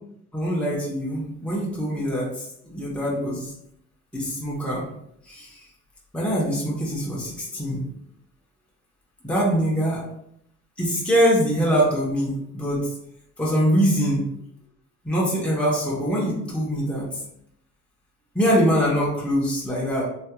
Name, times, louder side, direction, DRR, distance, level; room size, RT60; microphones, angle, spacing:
voice 1, 0.3-3.5 4.1-4.8 5.3-5.6 6.1-7.8 9.2-10.0 10.8-12.9 13.4-14.2 15.0-17.1 18.3-20.0, equal, 5° left, -6 dB, 1.1 m, -23 dB
3.1 x 2.9 x 2.3 m, 0.75 s
cardioid pair, 90°, 30 cm